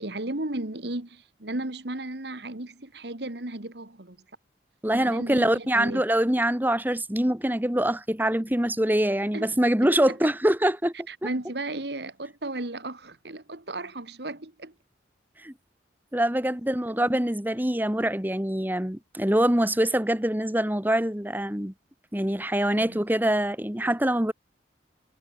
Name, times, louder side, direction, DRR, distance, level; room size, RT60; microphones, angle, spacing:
voice 1, 0.0-4.2 4.9-6.0 9.3-9.5 9.8-10.2 11.1-14.7 22.7-23.0, right 2 dB, 65° right, 2.1 m, -35 dB
voice 2, 4.8-10.9 15.4-15.5 16.1-21.7 22.1-24.3, right 1 dB, 10° right, 1.5 m, -24 dB
head